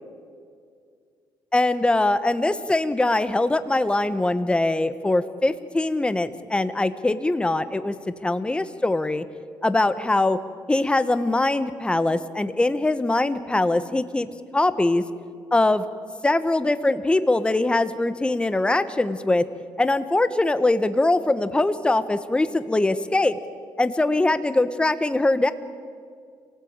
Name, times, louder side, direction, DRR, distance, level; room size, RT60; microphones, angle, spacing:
voice 1, 1.5-7.9 8.2-9.2 9.6-10.4 10.7-15.0 15.5-15.8 16.2-19.4 19.8-23.4 23.8-25.5, left 2 dB, 15° left, 12 dB, 1.2 m, -22 dB
26.5 x 18.0 x 8.9 m, 2.2 s
cardioid pair, 100°, 8 cm